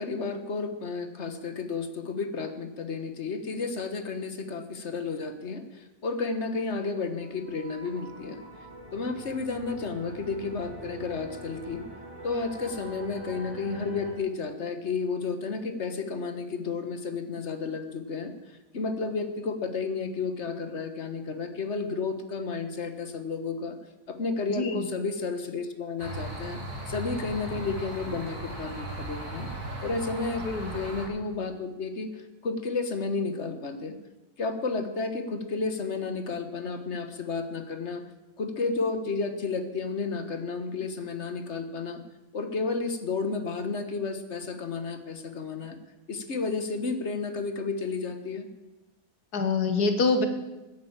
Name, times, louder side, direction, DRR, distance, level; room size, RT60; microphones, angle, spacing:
voice 1, 0.0-8.4 8.9-11.8 12.2-23.8 24.1-26.6 26.9-29.5 29.8-30.5 30.7-33.9 34.4-38.0 38.4-42.0 42.3-45.8 46.1-48.5, left 4 dB, 50° left, 9 dB, 1.6 m, -32 dB
sound 1, 6.7-14.2, right 1 dB, 35° right, 5.0 m, -44 dB
voice 2, 24.5-24.8 30.5-30.7 49.3-50.3, left 3 dB, 85° left, 8 dB, 1.9 m, -25 dB
sound 2, 26.0-31.1, right 1 dB, 80° right, 4.3 m, -37 dB
14.5 x 9.3 x 8.8 m, 1.1 s
omnidirectional pair, 1.6 m